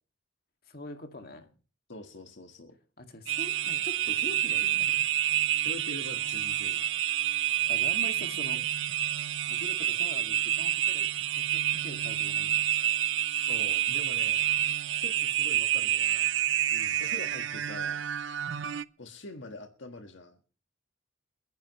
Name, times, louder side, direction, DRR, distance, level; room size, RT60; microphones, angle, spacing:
voice 1, 0.7-1.5 3.0-4.9 7.7-8.6 9.5-11.1 11.3-12.6 16.7-17.0, left 1 dB, 50° left, 5 dB, 2.2 m, -44 dB
voice 2, 1.9-2.7 5.6-6.8 13.3-14.5 14.9-16.3 17.0-18.0 19.0-20.4, left 2 dB, 75° left, 5 dB, 1.6 m, -44 dB
sound 1, 3.3-18.8, right 12 dB, 75° right, 0.6 m, -28 dB
30.0 x 10.5 x 3.1 m, 0.37 s
head